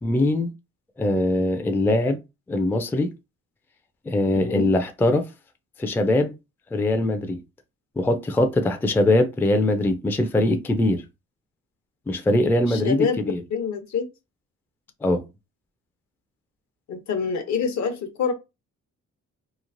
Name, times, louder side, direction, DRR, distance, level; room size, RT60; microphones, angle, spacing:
voice 1, 0.0-0.5 1.0-2.2 2.5-3.1 4.1-5.3 5.8-6.3 6.7-7.4 8.0-11.0 12.1-13.4 15.0-15.2, left 1 dB, 5° left, 0.3 m, -22 dB
voice 2, 4.3-4.7 12.7-13.2 13.5-14.1 16.9-18.3, left 6 dB, 65° left, 0.8 m, -26 dB
3.0 x 2.4 x 2.5 m
cardioid pair, 90°, 30 cm